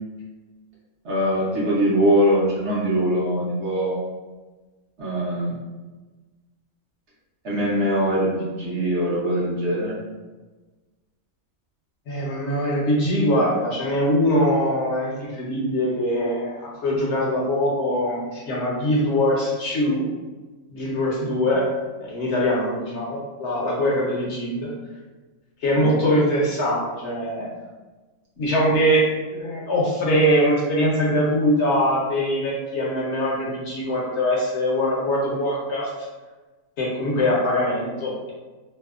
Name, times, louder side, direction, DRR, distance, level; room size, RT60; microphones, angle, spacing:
voice 1, 1.0-4.0 5.0-5.6 7.4-10.0 25.7-25.9, equal, 60° right, -6 dB, 0.9 m, -22 dB
voice 2, 12.1-20.0 20.7-21.7 22.0-24.7 25.6-27.5 28.4-35.9 36.8-38.3, equal, 65° left, -4 dB, 0.8 m, -22 dB
2.7 x 2.0 x 2.3 m, 1.2 s
omnidirectional pair, 1.4 m